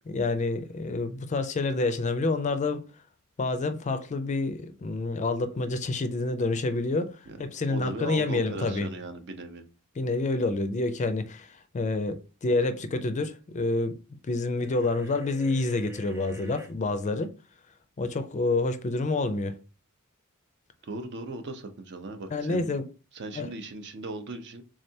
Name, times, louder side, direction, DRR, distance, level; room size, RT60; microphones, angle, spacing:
voice 1, 0.1-2.8 3.4-8.9 10.0-14.0 14.2-17.3 18.0-19.6 22.3-22.8 23.3-23.5, left 3 dB, 35° left, 0.4 m, -28 dB
voice 2, 7.7-9.6 20.8-22.8 23.1-24.6, right 2 dB, 55° right, 0.6 m, -38 dB
sound 1, 14.6-16.7, equal, 10° right, 0.6 m, -48 dB
3.6 x 3.2 x 2.7 m
head